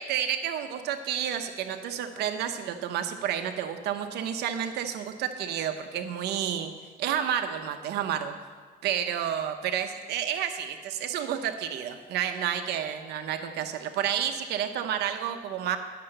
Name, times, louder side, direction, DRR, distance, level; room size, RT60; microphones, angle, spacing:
voice 1, 0.0-6.7 7.0-8.3 8.8-15.8, right 9 dB, 80° right, 8 dB, 0.9 m, -30 dB
10.5 x 6.8 x 7.8 m, 1.5 s
cardioid pair, 110°, 17 cm